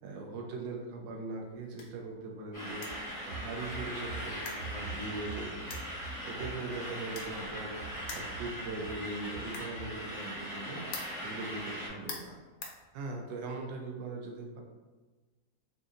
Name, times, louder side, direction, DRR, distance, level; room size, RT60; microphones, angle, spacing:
voice 1, 0.0-2.9 3.3-5.7 6.2-7.8 8.1-10.8 11.2-12.4 12.9-14.6, right 3 dB, 75° right, 1 dB, 1.3 m, -40 dB
sound 1, 1.2-13.5, left 3 dB, 75° left, 1.3 m, -49 dB
sound 2, 2.5-11.9, equal, 25° left, 0.4 m, -40 dB
sound 3, 2.9-4.2 4.5-6.5 7.8-8.5 8.8-9.0 9.3-9.5 9.7-9.9, right 4 dB, 55° right, 0.6 m, -44 dB
4.0 x 2.6 x 2.5 m, 1.3 s
omnidirectional pair, 2.0 m